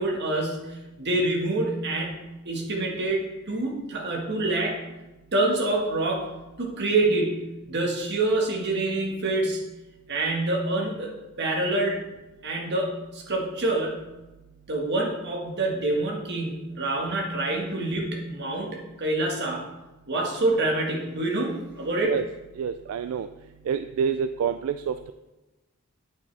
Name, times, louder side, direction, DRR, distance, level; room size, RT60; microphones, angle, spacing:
voice 1, 0.0-4.9 5.3-9.6 10.1-11.1 11.4-12.0 12.4-14.0 14.7-19.6 20.1-22.1, right 2 dB, 55° right, 0 dB, 1.6 m, -26 dB
voice 2, 22.6-23.3 23.7-25.1, right 7 dB, 75° right, 11 dB, 0.3 m, -27 dB
8.7 x 8.3 x 3.4 m, 1.1 s
head